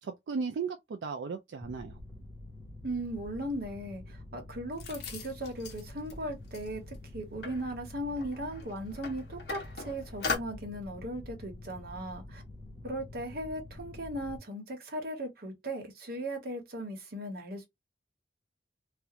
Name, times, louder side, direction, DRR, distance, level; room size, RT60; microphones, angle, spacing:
voice 1, 0.0-2.0, right 5 dB, 80° right, 0.4 m, -36 dB
Mechanical fan, 1.6-14.4, left 1 dB, 20° left, 0.5 m, -47 dB
voice 2, 2.8-12.4 12.8-17.6, right 1 dB, 55° right, 1.0 m, -37 dB
sound 1, 4.8-6.1 6.5-6.7 6.9-7.0 7.4-10.4, left 4 dB, 65° left, 0.8 m, -39 dB
2.5 x 2.2 x 2.7 m
head